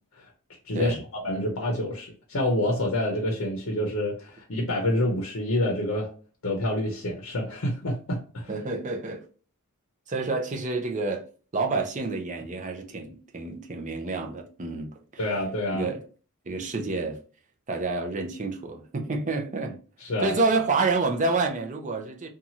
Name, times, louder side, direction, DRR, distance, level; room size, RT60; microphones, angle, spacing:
voice 1, 0.7-6.1 6.4-8.5 15.2-15.9 20.0-20.3, left 1 dB, 65° left, 0.7 m, -27 dB
voice 2, 8.5-9.2 10.1-11.2 11.5-14.9 15.7-16.0 16.5-17.2 17.7-19.8 20.2-22.3, right 3 dB, 35° right, 0.5 m, -28 dB
2.7 x 2.3 x 2.8 m
head